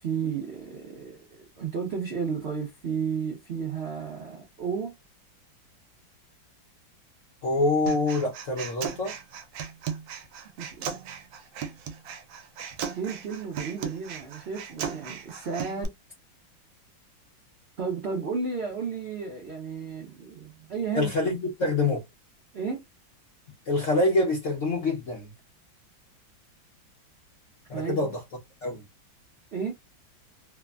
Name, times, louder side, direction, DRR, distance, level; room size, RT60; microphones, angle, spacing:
voice 1, 0.0-4.9 10.6-10.9 12.9-15.9 17.8-21.1 22.5-22.8 27.7-28.1 29.5-29.7, right 6 dB, 60° right, 0.6 m, -33 dB
voice 2, 7.4-9.2 20.9-22.0 23.7-25.3 27.7-28.1 28.6-28.8, left 2 dB, 60° left, 0.8 m, -25 dB
Human voice, 7.9-15.8, right 7 dB, 85° right, 1.3 m, -37 dB
3.3 x 2.1 x 2.2 m
omnidirectional pair, 2.1 m